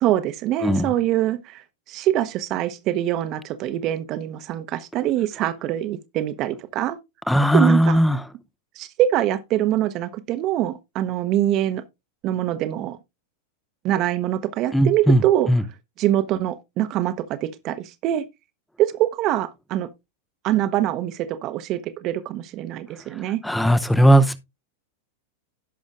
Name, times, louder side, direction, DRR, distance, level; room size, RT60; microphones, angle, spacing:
voice 1, 0.0-7.0 7.5-8.0 8.7-11.8 12.2-13.0 13.8-15.5 16.0-18.3 18.8-19.9 20.4-23.4, right 13 dB, 40° right, 0.9 m, -24 dB
voice 2, 7.3-8.2 14.7-15.2 15.5-15.6 23.1-24.4, right 1 dB, 5° left, 0.7 m, -18 dB
17.0 x 6.3 x 2.5 m
figure-of-eight pair, 90°, 0 cm